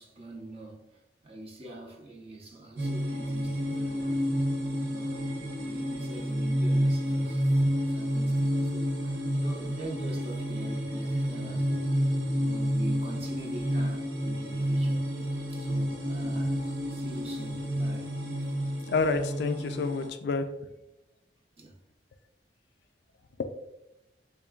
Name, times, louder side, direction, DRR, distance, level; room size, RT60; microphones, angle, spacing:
voice 1, 0.0-4.2 4.8-12.0 12.4-18.1 18.4-18.5 21.6-21.8, right 2 dB, 35° right, 0.7 m, -44 dB
sound 1, 2.8-20.1, equal, 80° right, 0.8 m, -29 dB
voice 2, 18.9-20.5 23.4-23.5, left 4 dB, 65° left, 0.3 m, -28 dB
6.7 x 2.3 x 2.3 m
head